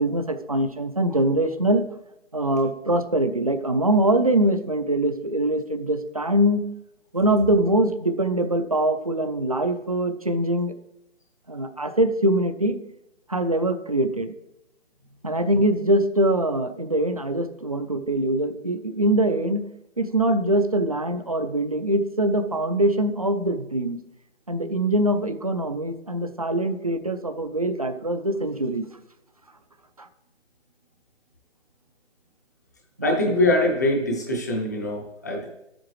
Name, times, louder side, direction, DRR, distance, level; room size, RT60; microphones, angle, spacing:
voice 1, 0.0-1.8 2.3-6.6 7.1-10.7 11.5-12.8 13.3-14.3 15.2-19.6 20.0-24.0 24.5-28.9 30.0-30.1 33.0-33.4, right 1 dB, 30° right, 9 dB, 0.4 m, -23 dB
voice 2, 33.0-35.5, left 1 dB, 15° left, 0 dB, 0.6 m, -23 dB
12.0 x 7.6 x 3.1 m, 0.90 s
figure-of-eight pair, 160°, 37 cm